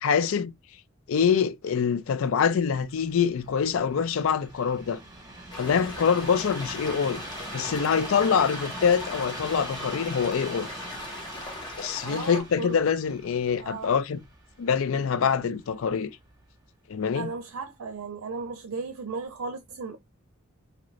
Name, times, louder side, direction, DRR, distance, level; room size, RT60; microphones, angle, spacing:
voice 1, 0.0-0.5 1.1-5.0 5.6-7.2 7.5-10.7 11.8-14.2 14.6-16.1 16.9-17.3, left 6 dB, 65° left, 0.4 m, -25 dB
Train, 2.4-15.6 16.3-16.4, right 2 dB, 15° right, 1.0 m, -42 dB
sound 1, 5.5-12.4, left 2 dB, 20° left, 1.0 m, -39 dB
voice 2, 12.0-12.8 13.6-13.9 17.1-20.0, right 4 dB, 90° right, 0.5 m, -35 dB
2.8 x 2.5 x 3.1 m
head